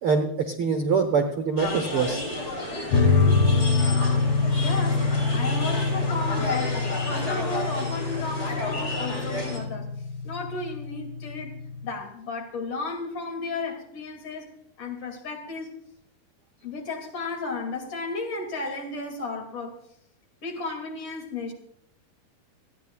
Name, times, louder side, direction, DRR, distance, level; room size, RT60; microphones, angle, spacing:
voice 1, 0.0-2.2, right 5 dB, 90° right, 1.1 m, -24 dB
sound 1, 1.6-9.6, left 2 dB, 20° left, 4.0 m, -32 dB
sound 2, 2.9-11.9, left 4 dB, 70° left, 4.1 m, -25 dB
voice 2, 4.6-9.9 10.2-14.5 14.8-15.7 16.6-19.8 20.4-21.5, left 3 dB, 45° left, 3.2 m, -34 dB
28.5 x 9.7 x 2.4 m
omnidirectional pair, 4.2 m